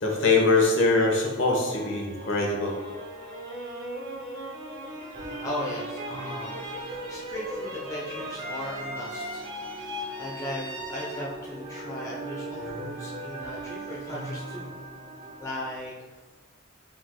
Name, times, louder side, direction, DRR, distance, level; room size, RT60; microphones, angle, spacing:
voice 1, 0.0-2.8, left 3 dB, 65° left, -1 dB, 1.0 m, -23 dB
sound 1, 1.4-12.5, equal, 70° right, 1.1 m, -39 dB
sound 2, 5.1-15.5, right 2 dB, 25° right, 0.7 m, -40 dB
voice 2, 5.2-14.7 15.4-16.2, left 1 dB, 15° left, -5 dB, 0.7 m, -37 dB
4.7 x 4.5 x 2.2 m, 1.3 s
head